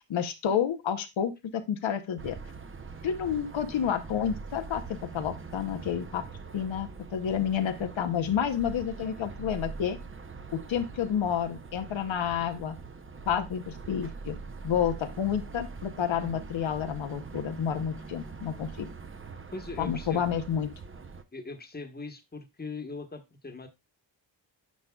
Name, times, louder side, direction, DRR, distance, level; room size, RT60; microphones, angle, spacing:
voice 1, 0.1-2.4 3.0-4.8 5.1-6.2 6.5-10.0 10.7-12.7 13.3-14.3 14.6-18.9 19.8-20.7, left 8 dB, 90° left, 8 dB, 0.9 m, -30 dB
sound 1, 2.2-21.2, right 4 dB, 30° right, 0.6 m, -43 dB
voice 2, 19.5-20.2 21.3-23.7, left 3 dB, 20° left, 6 dB, 1.1 m, -40 dB
9.5 x 5.2 x 2.3 m, 0.21 s
wide cardioid pair, 95°, 45 cm